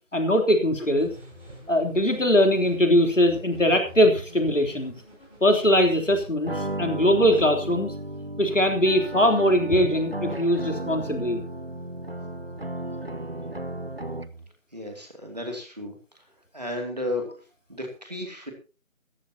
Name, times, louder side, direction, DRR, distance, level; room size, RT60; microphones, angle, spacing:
voice 1, 0.1-1.1 1.7-4.9 5.4-7.9 8.4-11.4, equal, 65° left, 3 dB, 3.5 m, -21 dB
sound 1, 0.9-6.3, equal, 5° left, 6.3 m, -47 dB
sound 2, 6.4-14.5, right 1 dB, 45° right, 0.8 m, -34 dB
voice 2, 14.7-15.9 16.5-17.2 17.7-18.5, left 1 dB, 30° right, 3 dB, 2.6 m, -33 dB
17.5 x 14.0 x 2.9 m, 0.33 s
figure-of-eight pair, 175°, 40 cm